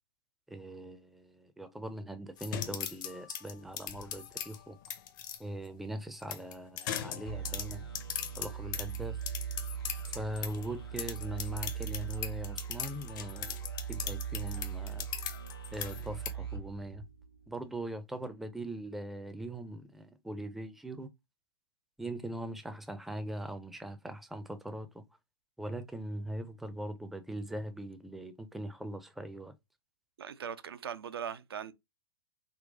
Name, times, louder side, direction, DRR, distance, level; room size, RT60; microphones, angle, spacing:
voice 1, 0.5-4.8 5.4-7.9 8.4-9.2 10.1-13.6 13.9-15.1 15.7-17.1 17.5-21.1 22.0-25.0 25.6-29.5, right 1 dB, ahead, 0.4 m, -41 dB
sound 1, 2.4-5.4 6.2-10.7 11.0-16.3, left 10 dB, 55° left, 0.6 m, -40 dB
sound 2, 7.3-17.6, right 8 dB, 85° left, 1.4 m, -40 dB
voice 2, 30.2-31.7, right 8 dB, 75° right, 0.4 m, -40 dB
3.8 x 2.2 x 2.4 m
figure-of-eight pair, 100°, 13 cm